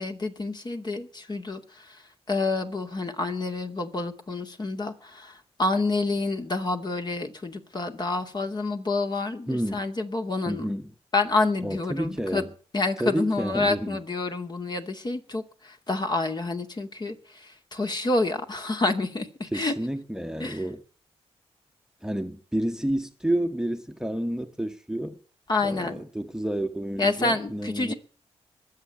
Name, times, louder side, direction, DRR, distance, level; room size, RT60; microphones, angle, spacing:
voice 1, 0.0-10.8 11.1-12.4 12.7-19.7 20.4-20.6 25.5-26.0 27.0-27.9, left 3 dB, 40° left, 2.5 m, -28 dB
voice 2, 9.5-9.8 10.5-10.8 11.6-12.4 13.0-14.0 19.5-20.8 22.0-25.2 25.6-27.9, right 1 dB, 5° right, 1.2 m, -30 dB
20.5 x 7.6 x 8.6 m
cardioid pair, 65°, 11 cm